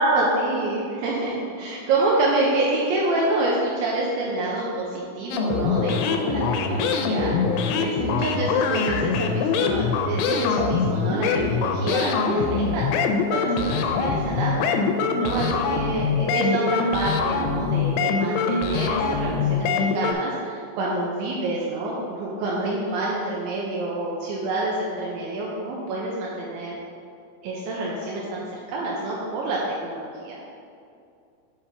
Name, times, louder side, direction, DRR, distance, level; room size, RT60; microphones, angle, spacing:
voice 1, 0.0-12.9 13.3-14.7 15.2-26.8 27.4-30.4, right 2 dB, 85° right, -4 dB, 2.7 m, -27 dB
sound 1, 5.3-20.1, left 5 dB, 85° left, 2.7 m, -24 dB
8.1 x 2.9 x 5.8 m, 2.4 s
omnidirectional pair, 5.8 m